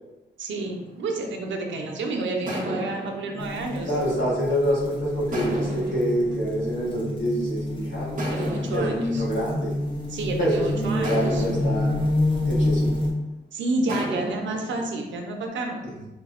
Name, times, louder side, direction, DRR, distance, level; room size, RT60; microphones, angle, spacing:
voice 1, 0.4-4.0 8.3-9.2 10.1-11.4 13.5-15.8, right 2 dB, 85° right, 2 dB, 0.5 m, -30 dB
sound 1, 0.6-1.9 2.5-4.7 5.3-7.5 8.2-10.4 11.0-13.3 13.9-15.5, right 1 dB, 45° right, 0.6 m, -35 dB
sound 2, 3.4-13.1, left 1 dB, 25° left, 0.6 m, -28 dB
voice 2, 3.8-9.7 10.4-11.9 12.4-12.9, equal, 75° left, -7 dB, 1.1 m, -26 dB
3.4 x 2.0 x 2.4 m, 1.0 s
wide cardioid pair, 135°, 19 cm